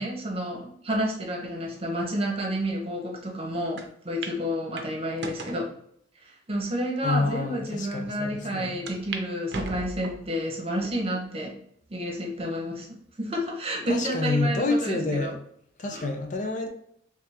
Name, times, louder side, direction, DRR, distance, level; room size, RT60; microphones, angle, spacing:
voice 1, 0.0-5.7 6.2-11.6 11.9-15.4 15.9-16.1, equal, 30° right, -1 dB, 0.9 m, -30 dB
sound 1, 3.8-3.9 4.2-4.4 4.8-5.6 6.3-6.4 7.1-7.2 7.5-7.6 8.9-9.2 9.5-10.3 10.8-11.3 11.8-11.9 13.0-13.5, right 3 dB, 65° right, 0.6 m, -37 dB
voice 2, 7.0-8.8 13.9-15.4 15.8-16.7, left 2 dB, 45° left, 3 dB, 0.5 m, -28 dB
3.5 x 3.3 x 2.9 m, 0.67 s
head